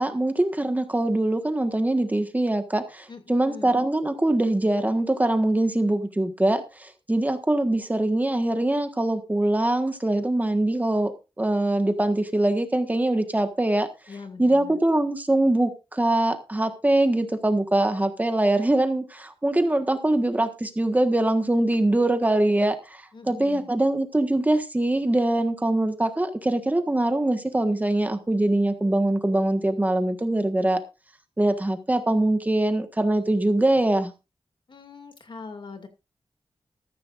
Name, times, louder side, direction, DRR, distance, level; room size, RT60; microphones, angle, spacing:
voice 1, 0.0-11.1 11.4-13.9 14.4-30.8 31.4-34.1, right 1 dB, 15° right, 7 dB, 1.4 m, -23 dB
voice 2, 3.1-3.7 14.1-14.8 23.1-23.7 34.7-35.9, left 4 dB, 60° left, 5 dB, 2.4 m, -42 dB
14.0 x 13.5 x 2.5 m, 0.29 s
wide cardioid pair, 120°, 9 cm